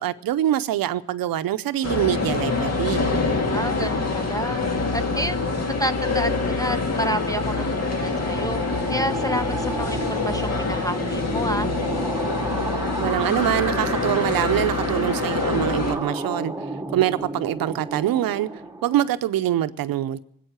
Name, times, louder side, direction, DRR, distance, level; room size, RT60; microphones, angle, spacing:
voice 1, 0.0-3.0 13.0-16.5 16.9-18.5 18.8-20.2, right 12 dB, 85° right, 13 dB, 0.7 m, -24 dB
sound 1, 1.8-16.0, left 3 dB, 45° left, 2.2 m, -25 dB
voice 2, 3.4-4.6 4.9-5.4 5.8-8.6 8.9-11.7, equal, 10° left, 11 dB, 0.6 m, -29 dB
sound 2, 6.8-19.2, right 2 dB, 10° right, 1.1 m, -32 dB
20.0 x 8.4 x 8.1 m, 0.72 s
cardioid pair, 80°, 34 cm